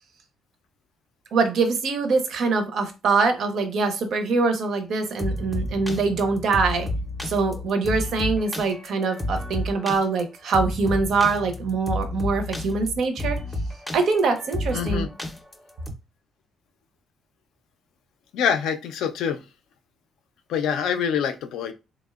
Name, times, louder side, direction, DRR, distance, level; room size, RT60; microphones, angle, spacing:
voice 1, 1.3-6.9 7.3-13.4 13.9-15.1, right 4 dB, 70° right, 0.5 m, -23 dB
sound 1, 5.2-15.9, left 1 dB, 5° left, 0.4 m, -31 dB
voice 2, 14.7-15.1 18.3-19.4 20.5-21.7, left 7 dB, 85° left, 0.3 m, -25 dB
2.8 x 2.0 x 2.3 m
cardioid pair, 90°, 0 cm